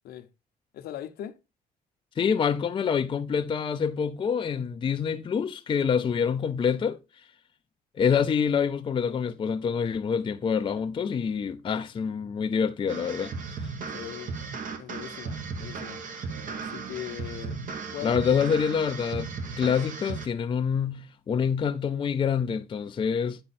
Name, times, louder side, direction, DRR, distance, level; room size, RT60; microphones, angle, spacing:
voice 1, 0.7-1.4 13.9-14.4 14.7-16.0 16.5-18.2, left 11 dB, 70° left, 0.8 m, -40 dB
voice 2, 2.2-7.0 7.9-13.3 18.0-23.4, left 6 dB, 30° left, 0.5 m, -26 dB
sound 1, 12.9-20.3, right 4 dB, 55° right, 1.3 m, -36 dB
8.8 x 4.4 x 4.2 m
cardioid pair, 110°, 17 cm